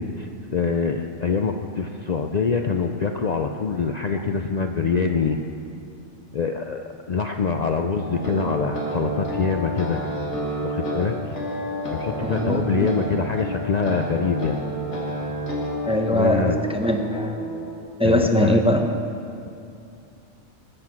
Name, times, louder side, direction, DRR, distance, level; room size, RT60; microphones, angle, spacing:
voice 1, 0.0-5.4 6.3-10.0 10.6-11.4 11.8-14.6 15.9-16.6 18.0-18.6, left 5 dB, 75° left, 5 dB, 0.3 m, -25 dB
sound 1, 8.0-17.8, equal, 55° left, 2.7 m, -30 dB
voice 2, 12.2-12.6 15.8-17.3 18.0-18.9, equal, 5° right, 4 dB, 0.6 m, -21 dB
20.5 x 7.7 x 6.0 m, 2.6 s
omnidirectional pair, 1.4 m